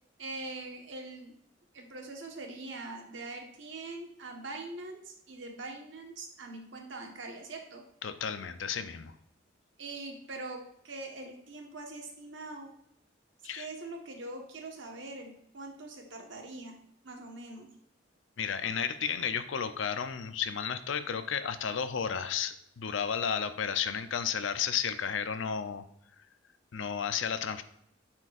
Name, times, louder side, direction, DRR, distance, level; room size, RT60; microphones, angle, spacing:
voice 1, 0.2-1.4 1.7-7.8 9.8-12.7 13.5-16.8 17.0-17.7, right 2 dB, 65° right, 2 dB, 1.2 m, -43 dB
voice 2, 8.0-9.1 13.4-13.7 18.4-25.8 26.7-27.6, left 7 dB, 75° left, 11 dB, 0.5 m, -33 dB
9.7 x 4.4 x 2.5 m, 0.73 s
head